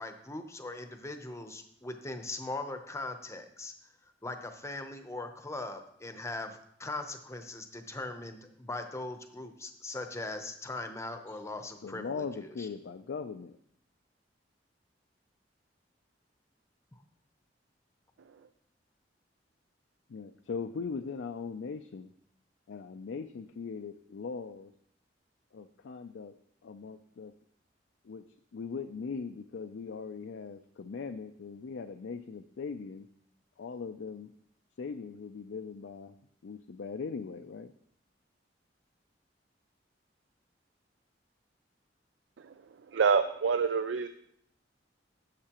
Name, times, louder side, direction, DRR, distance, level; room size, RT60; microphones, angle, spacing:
voice 1, 0.0-3.7 4.2-12.7, left 2 dB, 15° left, 7 dB, 0.7 m, -40 dB
voice 2, 11.8-13.5 20.1-22.1 22.7-24.7 25.5-26.3 26.6-27.3 28.0-28.2 28.5-33.1 33.6-34.3 34.8-36.1 36.4-37.7, left 5 dB, 75° left, 7 dB, 0.4 m, -40 dB
voice 3, 42.9-44.1, right 5 dB, 85° right, 10 dB, 0.4 m, -27 dB
11.5 x 7.4 x 2.9 m, 0.69 s
head